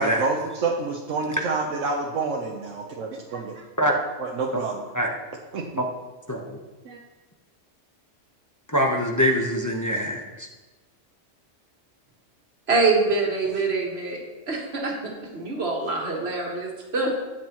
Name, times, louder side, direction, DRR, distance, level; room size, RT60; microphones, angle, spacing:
voice 1, 0.0-3.6 4.2-4.8 5.5-5.6 6.9-7.0, right 3 dB, 90° right, -1 dB, 1.2 m, -28 dB
voice 2, 6.3-6.6 8.7-10.5, equal, 15° left, 0 dB, 0.8 m, -24 dB
voice 3, 12.7-14.2 14.5-17.1, right 3 dB, 55° right, -1 dB, 2.0 m, -25 dB
13.0 x 7.8 x 3.0 m, 1.2 s
omnidirectional pair, 1.3 m